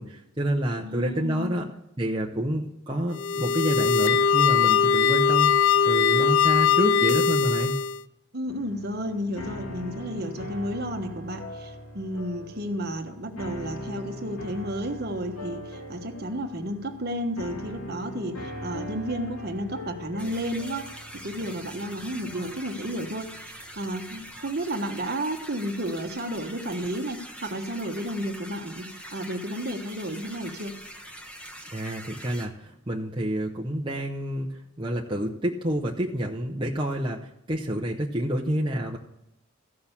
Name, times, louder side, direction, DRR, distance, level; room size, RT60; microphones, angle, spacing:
voice 1, 0.0-1.6 2.0-5.5 5.8-7.8 31.7-39.0, right 1 dB, 20° right, -1 dB, 0.8 m, -28 dB
voice 2, 0.7-1.7 8.3-20.9 21.1-30.8, equal, 45° right, 5 dB, 1.2 m, -32 dB
sound 1, 3.1-8.0, left 6 dB, 60° left, 0.3 m, -21 dB
sound 2, 8.5-24.7, equal, 85° left, 2.4 m, -41 dB
sound 3, 20.2-32.5, equal, 5° left, 1.0 m, -43 dB
14.5 x 6.4 x 7.2 m, 0.86 s
head